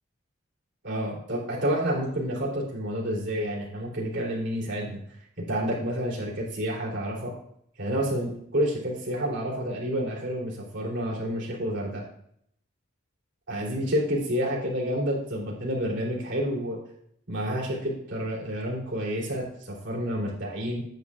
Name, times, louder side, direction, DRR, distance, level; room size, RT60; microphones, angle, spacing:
voice 1, 0.8-5.0 5.4-7.3 7.8-12.0 13.5-16.8 17.3-20.8, equal, 55° right, -4 dB, 3.2 m, -29 dB
9.3 x 9.2 x 2.4 m, 0.70 s
head